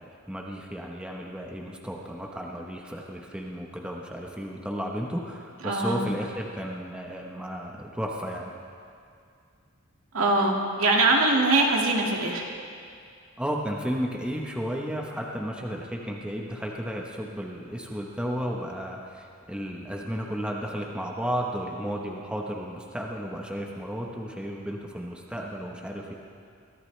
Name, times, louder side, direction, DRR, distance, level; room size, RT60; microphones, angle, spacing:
voice 1, 0.0-8.5 13.4-26.1, equal, 5° right, -1 dB, 1.1 m, -33 dB
voice 2, 5.6-6.0 10.1-12.4, right 2 dB, 70° right, -1 dB, 2.1 m, -22 dB
22.5 x 15.0 x 3.3 m, 2.3 s
head